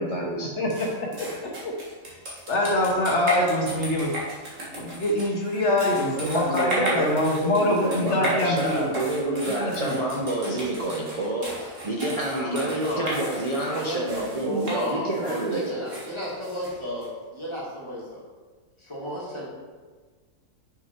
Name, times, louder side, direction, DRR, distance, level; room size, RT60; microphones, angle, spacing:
voice 1, 0.0-0.5 5.9-15.7, right 1 dB, 30° right, -4 dB, 0.7 m, -28 dB
voice 2, 0.6-1.7 2.5-4.1 4.8-8.9 9.5-10.0, left 1 dB, 60° left, -1 dB, 1.2 m, -25 dB
sound 1, 0.7-17.1, right 1 dB, 65° right, 2.1 m, -35 dB
voice 3, 12.3-13.0 13.7-18.2 18.8-19.5, equal, 20° left, -6 dB, 2.1 m, -32 dB
6.2 x 5.8 x 4.4 m, 1.4 s
omnidirectional pair, 1.5 m